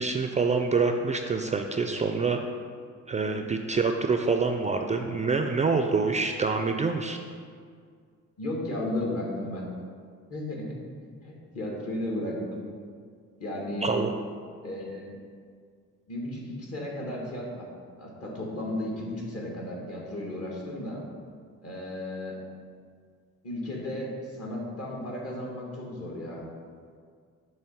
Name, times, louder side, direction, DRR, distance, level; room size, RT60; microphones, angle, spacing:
voice 1, 0.0-2.4 3.1-7.2 13.8-14.1, right 4 dB, 25° right, 5 dB, 0.4 m, -26 dB
voice 2, 8.4-9.7 10.3-10.8 11.2-12.6 13.4-14.0 14.6-15.1 16.1-17.7 18.0-21.0 21.6-22.4 23.4-26.5, left 1 dB, 50° left, -2 dB, 1.7 m, -34 dB
7.0 x 3.1 x 5.9 m, 2.1 s
cardioid pair, 90°, 30 cm